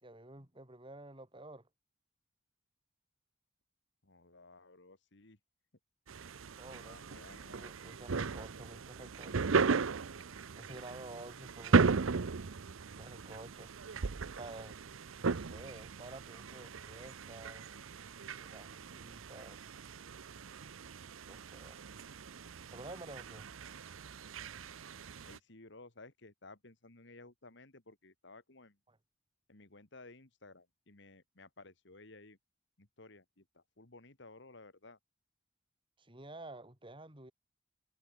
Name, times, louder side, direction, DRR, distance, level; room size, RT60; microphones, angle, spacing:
voice 1, 0.0-1.7 6.6-7.2 7.5-9.8 10.5-12.1 13.0-13.7 14.3-14.8 15.2-17.7 18.4-19.7 21.2-21.8 22.7-23.5 28.9-29.0 36.0-37.3, right 2 dB, 25° right, 3.3 m, -50 dB
voice 2, 4.0-5.4 6.7-7.7 25.2-28.8 29.5-32.4 32.8-35.0, left 2 dB, 60° left, 2.4 m, -56 dB
sound 1, 6.1-25.4, right 4 dB, 90° right, 0.7 m, -36 dB
head